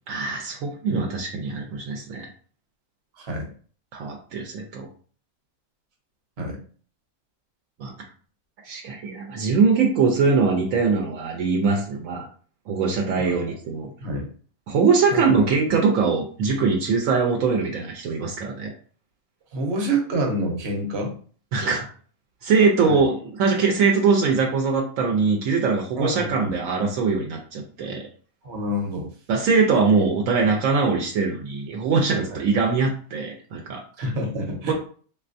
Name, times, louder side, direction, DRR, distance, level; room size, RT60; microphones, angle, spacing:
voice 1, 0.1-2.3 3.9-4.9 7.8-7.9 8.6-12.3 12.7-13.9 14.7-18.7 21.5-21.9 22.4-28.1 29.3-33.8 34.7-34.8, right 4 dB, 75° right, 0 dB, 1.0 m, -22 dB
voice 2, 3.2-3.5 6.4-6.6 13.1-13.4 14.0-14.3 15.1-15.2 19.5-21.1 22.9-23.0 26.0-26.5 28.4-29.1 32.3-32.5 34.0-34.7, right 1 dB, 55° right, 1 dB, 1.0 m, -27 dB
3.3 x 2.6 x 2.5 m, 0.43 s
omnidirectional pair, 1.4 m